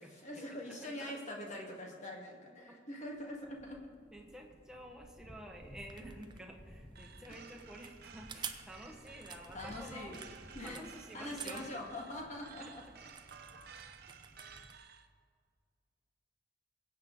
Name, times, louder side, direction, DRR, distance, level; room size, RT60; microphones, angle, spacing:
voice 1, 0.0-3.8 9.5-10.2 10.5-10.8 11.1-12.8, left 1 dB, 40° left, -1 dB, 2.2 m, -44 dB
sound 1, 3.1-10.6, equal, 10° left, 0.9 m, -56 dB
voice 2, 4.1-10.2 10.6-11.7, equal, 5° right, 0 dB, 1.5 m, -50 dB
sound 2, 5.5-14.8, right 6 dB, 25° right, 0.7 m, -51 dB
sound 3, 7.0-15.1, right 6 dB, 55° right, 0.9 m, -55 dB
21.5 x 8.7 x 4.0 m, 2.1 s
head